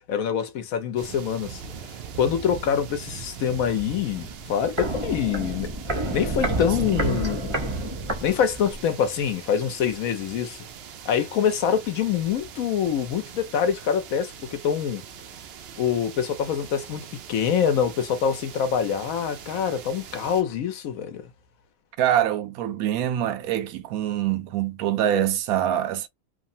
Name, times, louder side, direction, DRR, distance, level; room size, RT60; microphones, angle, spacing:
voice 1, 0.1-1.6 2.1-5.7 6.1-7.5 8.2-10.6 11.1-15.0 15.8-21.2, left 8 dB, 75° left, 1.1 m, -25 dB
sound 1, 1.0-20.4, right 7 dB, 65° right, 0.6 m, -42 dB
Walk footsteps, 4.2-8.9 9.2-9.3, right 1 dB, 25° right, 0.6 m, -29 dB
voice 2, 6.9-7.2 22.0-26.1, right 11 dB, 85° right, 1.0 m, -25 dB
3.1 x 2.1 x 2.6 m
omnidirectional pair, 1.5 m